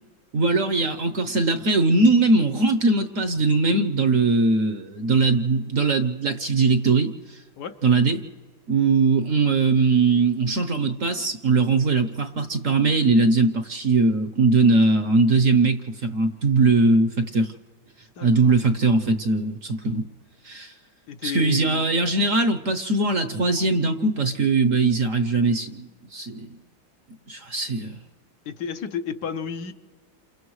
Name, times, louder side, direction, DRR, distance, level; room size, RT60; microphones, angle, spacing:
voice 1, 0.3-7.4 7.8-8.2 8.7-17.5 18.2-20.1 20.4-20.7 21.2-26.5 27.3-28.0, right 3 dB, 55° right, 8 dB, 1.0 m, -21 dB
voice 2, 18.2-18.5 21.1-21.9 28.4-29.7, left 7 dB, 70° left, 7 dB, 1.4 m, -32 dB
29.0 x 28.0 x 3.2 m, 1.4 s
omnidirectional pair, 2.0 m